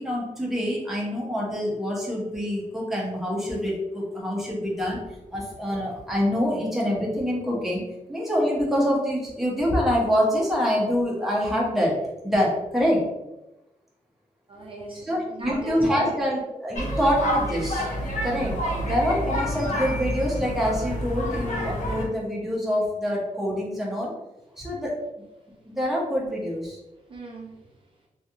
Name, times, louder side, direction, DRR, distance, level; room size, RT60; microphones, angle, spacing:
voice 1, 0.0-5.0 5.3-7.8 8.1-11.9 12.2-13.0 15.0-17.9 18.2-18.6 18.8-24.1 24.6-24.9 25.7-26.8, equal, ahead, -4 dB, 0.7 m, -25 dB
voice 2, 14.5-16.2 27.1-27.7, right 1 dB, 40° right, -3 dB, 0.5 m, -38 dB
sound 1, 16.7-22.1, equal, 65° left, 0.7 m, -28 dB
3.0 x 2.7 x 2.4 m, 0.94 s
wide cardioid pair, 175°, 14 cm